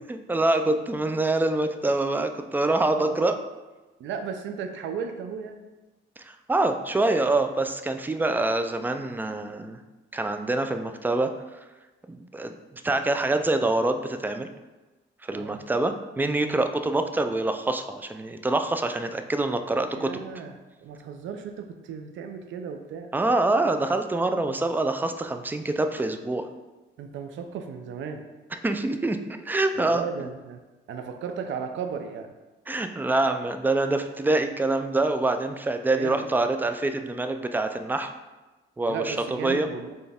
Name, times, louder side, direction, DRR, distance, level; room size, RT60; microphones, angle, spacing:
voice 1, 0.3-3.4 6.2-9.8 10.1-11.3 12.1-14.5 15.2-20.1 23.1-26.4 28.5-29.2 29.5-30.0 32.7-38.1 38.8-39.2 39.4-39.7, right 2 dB, 10° right, 7 dB, 0.3 m, -25 dB
voice 2, 2.9-3.3 4.0-5.6 15.3-15.6 20.0-20.5 20.8-23.1 27.0-28.2 29.7-30.6 30.9-32.3 35.9-36.2 38.9-40.0, right 6 dB, 75° right, 6 dB, 0.5 m, -35 dB
4.2 x 3.3 x 3.5 m, 1.1 s
cardioid pair, 90°, 20 cm